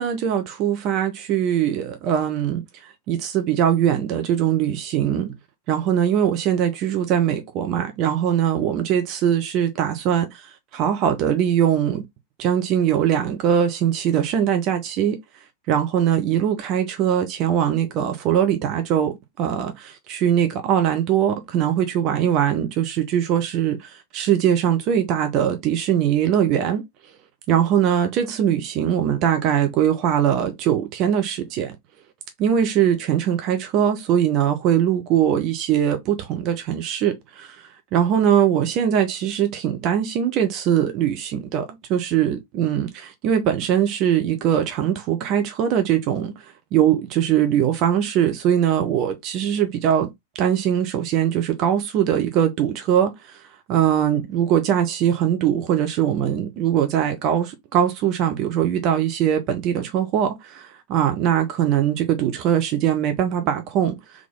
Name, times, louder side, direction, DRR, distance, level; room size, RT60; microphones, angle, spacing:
voice 1, 0.0-5.3 5.7-12.0 12.4-15.2 15.7-26.8 27.5-31.7 32.4-37.6 37.9-46.3 46.7-50.1 50.4-53.4 53.7-64.3, right 9 dB, 40° right, 0.8 m, -21 dB
3.8 x 3.2 x 3.8 m
figure-of-eight pair, 90°, 0 cm